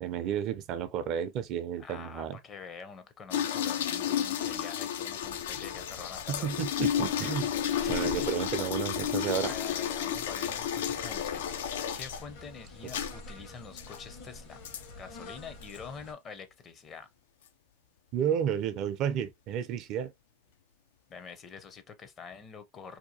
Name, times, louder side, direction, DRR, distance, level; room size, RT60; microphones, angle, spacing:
voice 1, 0.0-2.4 6.3-7.5 7.9-9.5 12.9-13.1 18.1-20.1, right 9 dB, 50° right, 0.4 m, -32 dB
voice 2, 1.8-6.6 7.8-8.3 9.4-11.6 11.9-14.6 15.0-17.1 21.1-23.0, left 5 dB, 35° left, 0.6 m, -46 dB
sound 1, 3.3-12.2 12.9-13.1 13.8-14.0 14.6-14.8 15.6-15.8, left 9 dB, 80° left, 0.3 m, -32 dB
sound 2, 5.2-16.1, left 2 dB, 65° left, 1.2 m, -48 dB
2.7 x 2.2 x 2.7 m
hypercardioid pair, 100°, 0 cm